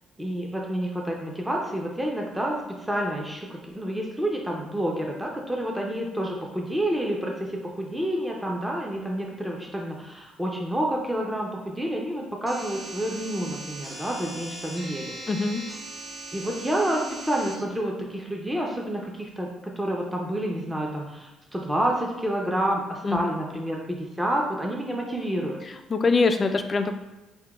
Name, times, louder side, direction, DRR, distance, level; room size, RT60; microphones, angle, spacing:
voice 1, 0.2-15.2 16.3-25.6, right 1 dB, 10° right, -1 dB, 0.6 m, -29 dB
sound 1, 12.5-17.5, right 1 dB, 35° right, 1.1 m, -39 dB
voice 2, 15.3-15.6 23.0-23.2 25.9-27.0, left 4 dB, 35° left, 7 dB, 0.4 m, -23 dB
6.5 x 2.2 x 2.3 m, 1.1 s
cardioid pair, 95°, 0 cm